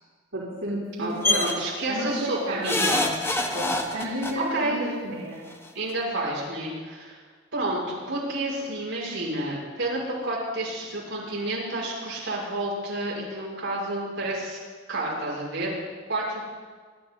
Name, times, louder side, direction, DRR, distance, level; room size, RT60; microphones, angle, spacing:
voice 1, 0.3-1.5 1.9-3.1 3.5-5.4, right 1 dB, 90° right, -8 dB, 3.8 m, -32 dB
voice 2, 1.0-3.1 4.3-4.8 5.7-7.2 7.5-14.6 14.9-15.8 16.1-16.5, right 1 dB, 65° right, -6 dB, 6.3 m, -30 dB
sound 1, 1.2-1.5 2.6-4.3 5.5-5.6 5.9-6.0, left 2 dB, 10° left, 1.1 m, -25 dB
26.5 x 11.5 x 4.0 m, 1.5 s
head